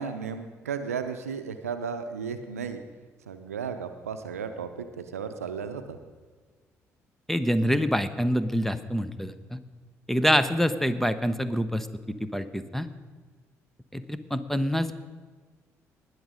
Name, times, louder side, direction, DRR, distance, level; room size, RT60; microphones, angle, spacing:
voice 1, 0.0-2.8 3.3-6.0, right 6 dB, 85° right, 9 dB, 0.6 m, -34 dB
voice 2, 7.3-9.6 10.1-12.9 13.9-15.0, equal, 5° left, 13 dB, 0.9 m, -26 dB
19.5 x 6.6 x 5.1 m, 1.4 s
figure-of-eight pair, 50°, 8 cm